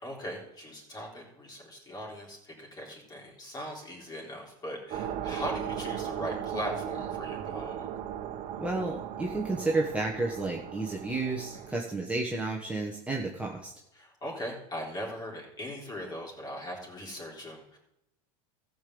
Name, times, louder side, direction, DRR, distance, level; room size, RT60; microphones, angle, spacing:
voice 1, 0.0-7.9 11.5-11.6 13.9-17.8, equal, 20° left, -1 dB, 3.9 m, -39 dB
sound 1, 4.9-11.7, right 9 dB, 40° right, 1.2 m, -37 dB
voice 2, 8.6-13.7, right 2 dB, 5° right, -2 dB, 1.4 m, -31 dB
14.5 x 5.3 x 7.8 m, 0.85 s
supercardioid pair, 130°, 19 cm